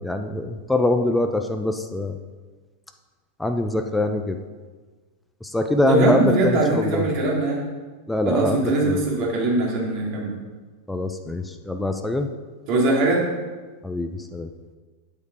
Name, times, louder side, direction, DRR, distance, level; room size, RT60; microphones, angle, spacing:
voice 1, 0.0-2.1 3.4-4.4 5.4-7.0 8.1-9.0 10.9-12.3 13.8-14.5, left 2 dB, 5° left, 6 dB, 0.6 m, -24 dB
voice 2, 5.9-7.6 8.2-10.3 12.7-13.2, right 2 dB, 40° right, -3 dB, 3.0 m, -21 dB
8.7 x 8.1 x 4.9 m, 1.4 s
figure-of-eight pair, 90°, 0 cm